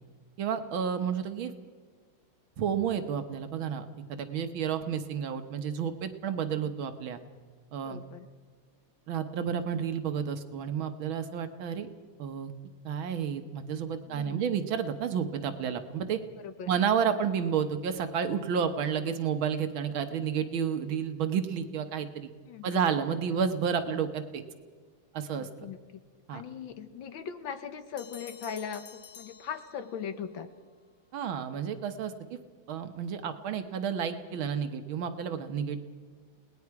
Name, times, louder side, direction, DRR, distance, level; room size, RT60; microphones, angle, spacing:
voice 1, 0.4-1.5 2.6-7.2 7.7-8.0 9.1-11.9 12.2-12.5 12.9-16.2 16.7-22.3 22.6-24.4 25.1-25.5 26.3-26.4 31.1-32.4 32.7-35.8, right 7 dB, 75° right, 8 dB, 1.9 m, -31 dB
voice 2, 7.8-8.3 14.1-14.6 16.4-16.7 22.5-22.9 25.4-26.0 26.3-30.5, left 7 dB, 70° left, 9 dB, 1.8 m, -40 dB
Bell, 28.0-30.2, left 7 dB, 50° left, 1.3 m, -50 dB
29.0 x 19.0 x 4.8 m, 1.5 s
omnidirectional pair, 2.2 m